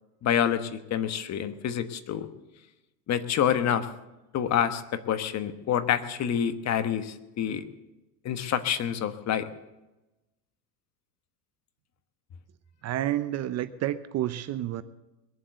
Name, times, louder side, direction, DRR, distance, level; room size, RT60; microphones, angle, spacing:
voice 1, 0.2-2.3 3.1-3.9 4.3-7.6 8.2-9.5, left 9 dB, 35° left, 11 dB, 1.2 m, -27 dB
voice 2, 12.8-14.8, right 13 dB, 35° right, 13 dB, 0.6 m, -30 dB
21.5 x 7.7 x 8.1 m, 1.0 s
supercardioid pair, 115°, 48 cm